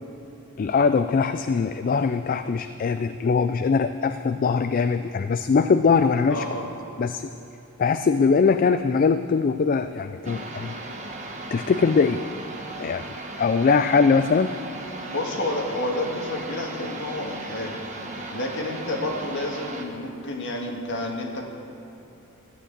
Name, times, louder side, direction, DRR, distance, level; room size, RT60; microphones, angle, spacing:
voice 1, 0.6-6.4 7.0-7.3 7.8-10.7 11.5-12.2 12.8-14.6, left 5 dB, 40° left, 10 dB, 0.3 m, -21 dB
voice 2, 6.3-6.7 15.1-17.7 18.3-21.6, left 1 dB, 55° left, 0 dB, 1.8 m, -30 dB
sound 1, 10.2-19.8, right 2 dB, 30° right, 1.1 m, -36 dB
13.5 x 9.0 x 8.1 m, 2.7 s
head